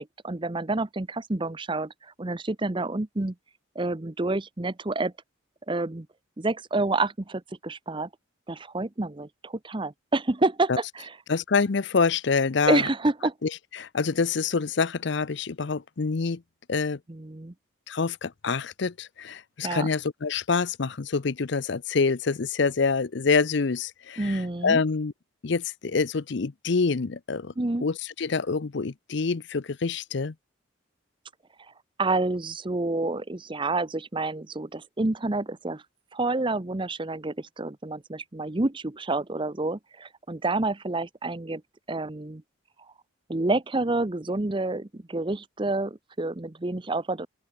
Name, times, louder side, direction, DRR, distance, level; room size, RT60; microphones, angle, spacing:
voice 1, 0.0-1.9 2.2-3.3 3.8-5.1 5.7-6.1 6.4-8.1 8.5-10.7 11.0-11.1 12.7-13.3 17.1-17.5 19.6-19.9 24.2-24.8 27.6-27.9 32.0-35.8 36.1-41.6 41.9-42.4 43.3-47.3, right 2 dB, 25° right, 0.7 m, -28 dB
voice 2, 11.3-12.9 13.4-16.4 16.7-17.0 17.9-25.1 25.4-27.5 27.8-30.3, left 4 dB, 60° left, 0.6 m, -26 dB
open air
head